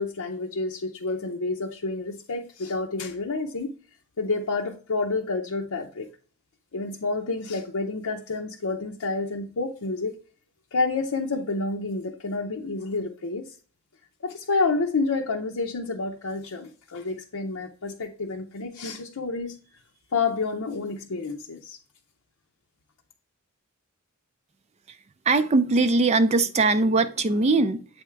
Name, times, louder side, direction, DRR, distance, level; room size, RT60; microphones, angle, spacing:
voice 1, 0.0-3.7 4.2-6.1 6.7-10.2 10.7-13.5 14.2-19.5 20.1-21.8, left 3 dB, 75° left, 0.7 m, -29 dB
voice 2, 25.3-28.0, right 3 dB, 30° right, 0.4 m, -21 dB
8.1 x 3.5 x 4.5 m
head